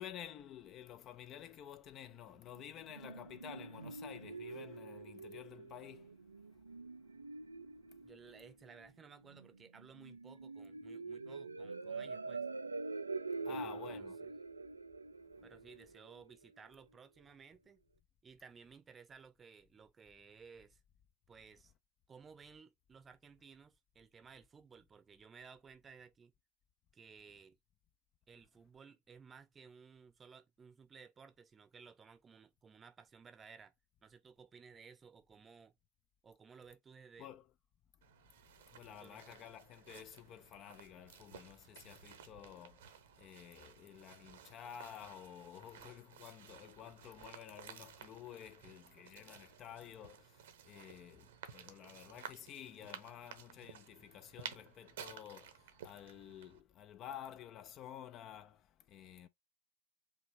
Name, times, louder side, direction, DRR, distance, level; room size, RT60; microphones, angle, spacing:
voice 1, 0.0-6.2 13.4-14.2 37.2-37.4 38.7-59.3, left 10 dB, 35° left, 0.4 m, -52 dB
sound 1, 2.5-16.5, right 3 dB, 80° right, 0.3 m, -46 dB
voice 2, 8.0-12.5 13.5-14.3 15.4-17.8 18.2-20.8 21.3-21.7 22.1-26.3 26.9-27.6 28.3-33.7 34.0-35.7 36.2-37.3 38.9-39.4, right 5 dB, 20° right, 0.7 m, -58 dB
sound 2, 38.0-56.6, right 8 dB, 60° right, 0.9 m, -55 dB
5.0 x 2.9 x 3.4 m
figure-of-eight pair, 90°, 0 cm